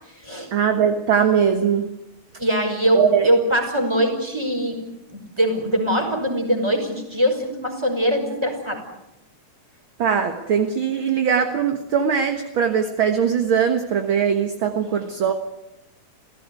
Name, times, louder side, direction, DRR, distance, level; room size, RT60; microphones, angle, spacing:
voice 1, 0.5-1.9 2.9-3.3 10.0-15.3, right 7 dB, 50° right, 6 dB, 2.0 m, -20 dB
voice 2, 2.4-4.8 5.1-8.8 14.8-14.9, equal, 10° right, 4 dB, 5.6 m, -22 dB
28.5 x 17.0 x 9.7 m, 0.89 s
omnidirectional pair, 3.3 m